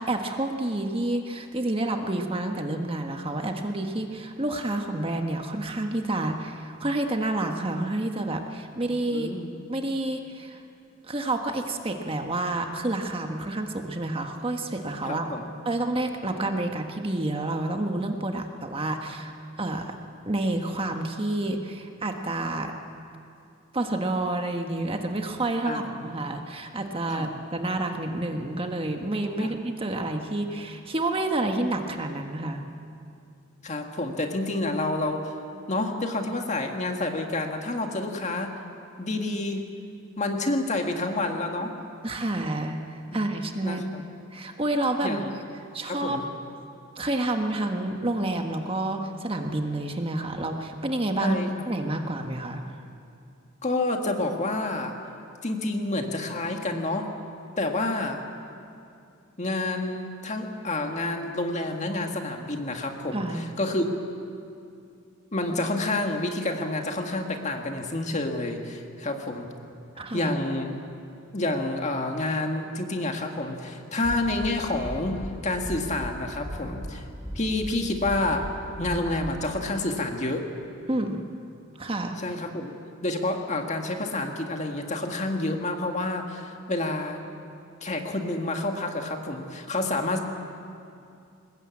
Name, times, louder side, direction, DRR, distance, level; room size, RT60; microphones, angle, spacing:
voice 1, 0.0-9.3 9.7-10.6 11.0-15.3 15.6-19.3 19.6-19.9 20.3-22.7 23.7-32.6 42.0-44.1 44.3-45.2 45.7-46.2 47.0-51.4 51.7-52.6 63.1-63.4 70.0-70.3 80.9-81.2 81.8-82.2, right 2 dB, 25° right, 4 dB, 1.4 m, -29 dB
voice 2, 9.1-9.5 15.0-15.4 25.7-25.8 27.1-27.3 29.4-29.5 33.6-35.3 35.7-38.5 39.0-39.7 40.2-41.7 43.6-44.0 45.0-45.3 45.9-46.2 51.2-51.5 53.6-55.0 55.4-57.1 57.6-58.2 59.4-63.9 65.3-69.5 70.0-70.8 71.3-77.1 77.4-78.5 78.8-80.4 82.2-82.7 83.0-87.2 87.8-90.2, left 2 dB, 35° left, 3 dB, 1.9 m, -29 dB
sound 1, 74.0-74.5 74.8-75.3 75.6-76.1 76.4-76.9 77.2-77.7 78.0-78.5 78.8-79.3, equal, 15° left, 7.5 m, -36 dB
22.0 x 20.0 x 8.6 m, 2.5 s
head